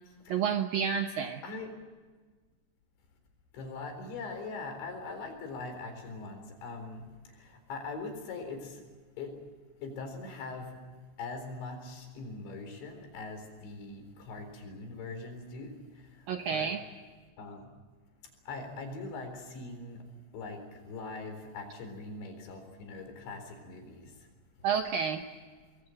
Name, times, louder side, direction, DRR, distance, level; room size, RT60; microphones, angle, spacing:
voice 1, 0.3-1.4 16.3-16.8 24.6-25.2, right 7 dB, 75° right, 5 dB, 2.1 m, -30 dB
voice 2, 3.5-7.0 7.3-8.8 9.2-9.3 9.8-10.7 11.2-15.8 16.2-16.7 17.4-17.6 18.5-20.0 20.3-24.1, left 3 dB, 75° left, 6 dB, 6.3 m, -41 dB
24.5 x 22.0 x 7.7 m, 1.4 s
omnidirectional pair, 5.4 m